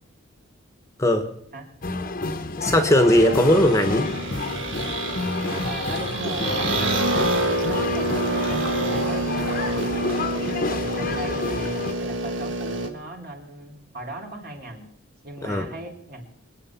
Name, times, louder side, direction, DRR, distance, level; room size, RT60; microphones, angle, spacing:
sound 1, 1.8-11.9, left 3 dB, 45° left, 1.0 m, -29 dB
voice 1, 2.6-4.1 15.4-15.7, left 1 dB, 15° left, 6 dB, 1.2 m, -18 dB
sound 2, 3.1-12.9, right 2 dB, 65° right, 1.6 m, -27 dB
voice 2, 5.4-7.0 7.5-14.9 15.2-16.2, right 1 dB, 50° right, 1 dB, 3.2 m, -38 dB
24.0 x 8.8 x 5.8 m, 0.67 s
head